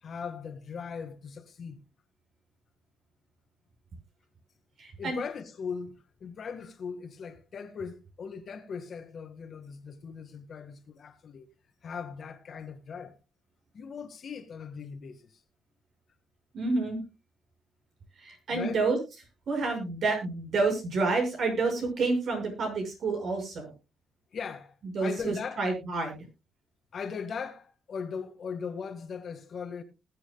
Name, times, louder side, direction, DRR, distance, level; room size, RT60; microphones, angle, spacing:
voice 1, 0.0-1.8 5.0-11.5 11.8-13.2 13.7-15.4 18.5-18.8 24.3-25.7 26.9-29.8, left 6 dB, 50° left, 1.8 m, -39 dB
voice 2, 4.8-5.2 16.5-17.0 18.2-19.0 19.5-23.7 24.9-26.2, right 3 dB, 60° right, 6.4 m, -29 dB
20.0 x 8.1 x 2.3 m
cardioid pair, 90°, 0 cm